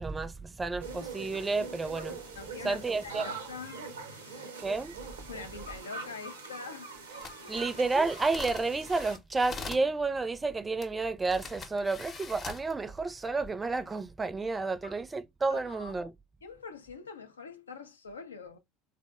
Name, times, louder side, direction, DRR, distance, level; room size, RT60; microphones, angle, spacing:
voice 1, 0.0-2.2 2.6-3.3 4.6-5.0 7.5-16.1, right 3 dB, 20° right, 0.4 m, -31 dB
sound 1, 0.8-9.2, right 4 dB, 80° right, 0.5 m, -43 dB
voice 2, 2.3-4.5 5.3-6.9 7.4-7.7 14.6-15.0 15.5-16.0 16.4-18.6, left 4 dB, 85° left, 0.4 m, -45 dB
sound 2, 7.1-9.9 10.8-10.9 11.3-12.7 13.3-13.5, left 4 dB, 35° left, 0.7 m, -43 dB
3.6 x 2.1 x 2.2 m
figure-of-eight pair, 65°, 0 cm